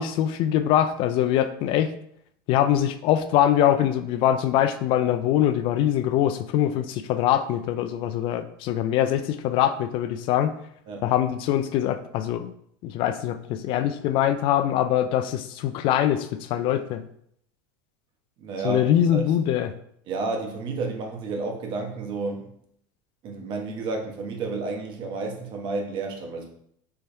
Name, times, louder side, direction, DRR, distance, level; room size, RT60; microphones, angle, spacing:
voice 1, 0.0-1.9 2.5-10.6 11.0-12.5 12.8-17.0 18.6-19.7, left 11 dB, 45° left, 11 dB, 0.3 m, -23 dB
voice 2, 18.4-19.3 20.1-22.5 23.2-26.5, right 3 dB, 45° right, 3 dB, 1.1 m, -31 dB
4.5 x 3.3 x 3.2 m, 0.69 s
supercardioid pair, 125°, 12 cm